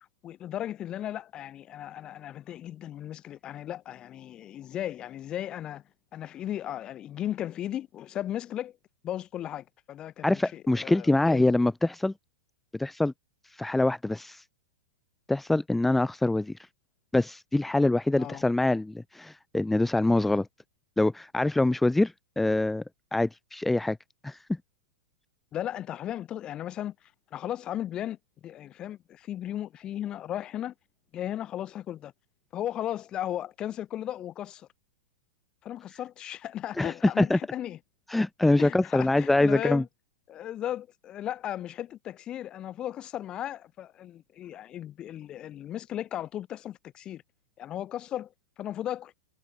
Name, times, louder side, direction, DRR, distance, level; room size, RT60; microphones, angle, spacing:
voice 1, 0.2-5.8 6.1-8.8 9.0-11.6 18.2-18.4 25.5-30.7 31.1-32.1 32.5-34.7 35.6-37.8 38.6-39.9 40.3-47.2 47.6-49.1, left 11 dB, 30° left, 5.5 m, -36 dB
voice 2, 10.2-12.1 12.7-13.1 13.5-14.4 15.3-16.5 17.1-20.5 21.0-22.8 23.1-24.0 24.2-24.6 36.8-37.4 38.1-39.8, left 2 dB, 5° left, 1.8 m, -25 dB
hypercardioid pair, 125°, 3 cm